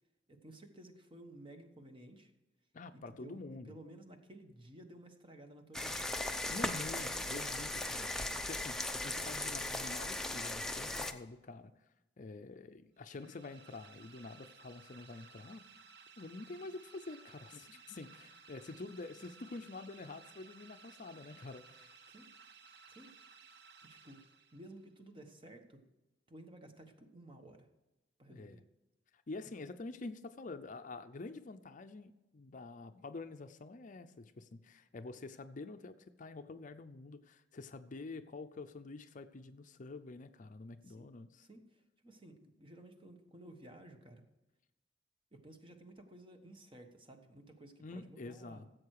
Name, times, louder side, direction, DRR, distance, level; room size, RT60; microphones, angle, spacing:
voice 1, 0.3-2.3 2.9-6.1 22.1-22.3 22.9-23.1 23.8-24.2 24.5-25.8 26.3-27.7 28.2-28.6 29.4-29.5 40.8-41.1 41.4-44.2 45.3-48.7, right 1 dB, 30° right, 5 dB, 1.2 m, -55 dB
voice 2, 2.7-3.7 6.5-11.7 12.2-15.6 16.2-22.0 28.3-28.6 29.3-41.5 47.8-48.7, left 3 dB, 45° left, 10 dB, 0.5 m, -47 dB
sound 1, 5.7-11.1, left 1 dB, 5° left, 0.6 m, -38 dB
sound 2, 13.0-24.8, right 5 dB, 60° right, 0.9 m, -58 dB
15.5 x 7.8 x 4.8 m, 1.0 s
head